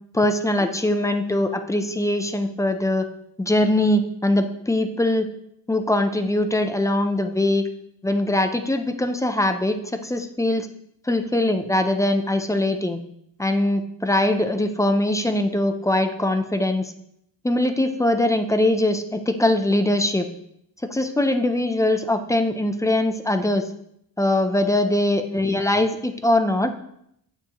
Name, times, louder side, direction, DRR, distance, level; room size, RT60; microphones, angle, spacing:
voice 1, 0.1-3.1 3.4-5.3 5.7-7.7 8.0-10.7 11.1-13.0 13.4-16.9 17.4-20.3 20.9-23.7 24.2-26.7, left 1 dB, 10° left, 7 dB, 0.4 m, -22 dB
7.4 x 7.0 x 2.9 m, 0.73 s
wide cardioid pair, 135°, 44 cm